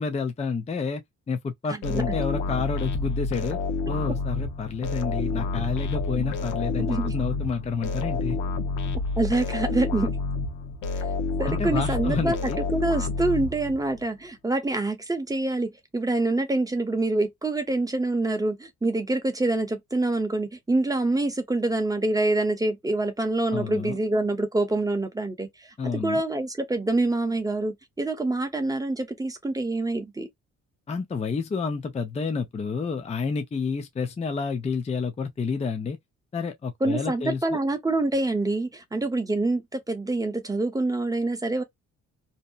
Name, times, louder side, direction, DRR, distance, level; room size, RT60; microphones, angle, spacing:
voice 1, 0.0-3.6 3.9-8.4 11.4-12.6 23.5-24.0 25.8-26.2 30.9-36.0 36.3-37.6, left 5 dB, 20° left, 0.5 m, -29 dB
voice 2, 1.7-2.0 4.0-4.1 6.9-7.1 9.2-10.1 11.4-12.4 12.7-30.3 36.8-41.6, right 2 dB, 10° right, 0.9 m, -26 dB
sound 1, 1.8-14.0, left 3 dB, 80° left, 0.8 m, -29 dB
2.8 x 2.0 x 2.4 m
cardioid pair, 90°, 30 cm